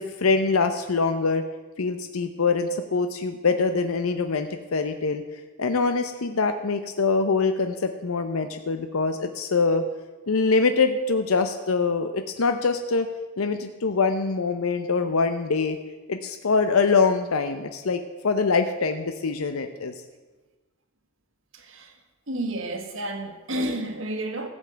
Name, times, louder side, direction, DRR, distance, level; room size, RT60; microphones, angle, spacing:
voice 1, 0.0-1.4 1.8-5.2 5.6-9.8 10.3-13.1 13.4-15.8 16.1-19.9, left 4 dB, 90° left, 7 dB, 0.7 m, -24 dB
voice 2, 21.5-22.0 22.3-24.5, right 1 dB, 65° right, 6 dB, 1.5 m, -31 dB
15.0 x 5.4 x 7.8 m, 1.2 s
head